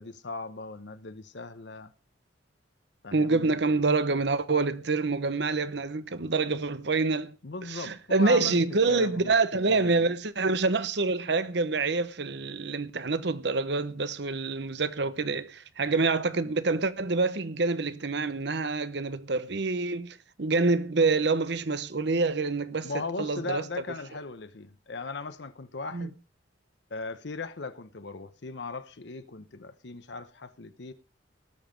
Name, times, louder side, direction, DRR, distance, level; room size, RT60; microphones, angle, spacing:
voice 1, 0.0-1.9 3.0-3.5 7.4-8.6 8.9-10.1 22.8-26.1 26.9-30.9, left 3 dB, 65° left, 0.8 m, -38 dB
voice 2, 3.1-7.3 7.7-22.9 23.2-23.6 25.9-26.1, right 3 dB, 60° right, 0.9 m, -26 dB
18.5 x 7.2 x 5.2 m
head